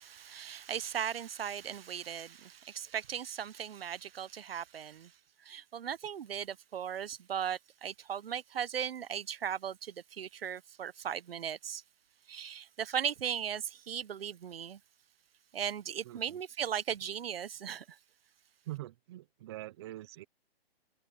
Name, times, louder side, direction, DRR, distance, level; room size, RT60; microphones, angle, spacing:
voice 1, 0.0-5.1 5.4-11.8 12.3-14.8 15.5-18.0, right 8 dB, 70° right, 1.0 m, -37 dB
voice 2, 16.0-16.4 18.7-20.2, right 16 dB, 25° right, 0.8 m, -44 dB
hypercardioid pair, 160°, 31 cm